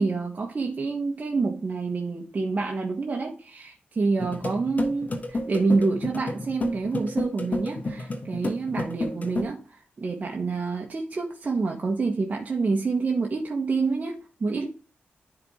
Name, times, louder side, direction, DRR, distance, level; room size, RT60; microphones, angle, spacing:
voice 1, 0.0-14.7, right 4 dB, 45° right, 0 dB, 1.3 m, -27 dB
sound 1, 4.2-9.4, left 2 dB, 45° left, 1.5 m, -31 dB
10.5 x 4.2 x 3.8 m, 0.36 s
cardioid pair, 75°, 4 cm